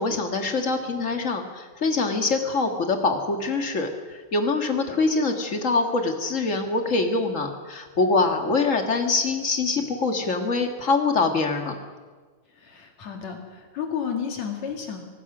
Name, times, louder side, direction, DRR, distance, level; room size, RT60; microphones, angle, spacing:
voice 1, 0.0-11.7, left 3 dB, 30° left, 4 dB, 1.7 m, -24 dB
voice 2, 12.6-15.0, left 7 dB, 60° left, 3 dB, 3.3 m, -32 dB
24.0 x 19.0 x 6.2 m, 1.5 s
omnidirectional pair, 3.6 m